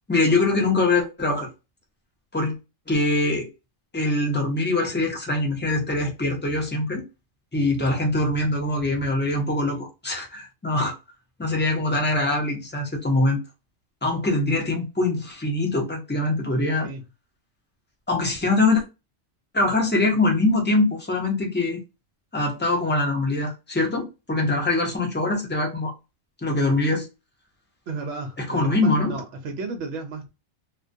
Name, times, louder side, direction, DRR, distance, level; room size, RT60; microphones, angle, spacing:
voice 1, 0.1-1.5 2.3-2.6 2.9-3.5 3.9-7.0 7.5-11.0 11.4-13.4 14.0-16.9 18.1-18.8 19.5-21.8 22.3-25.9 26.4-27.1 28.4-29.2, left 2 dB, 15° left, 0.4 m, -23 dB
voice 2, 27.9-30.3, right 3 dB, 70° right, 0.8 m, -33 dB
2.3 x 2.2 x 2.6 m
omnidirectional pair, 1.4 m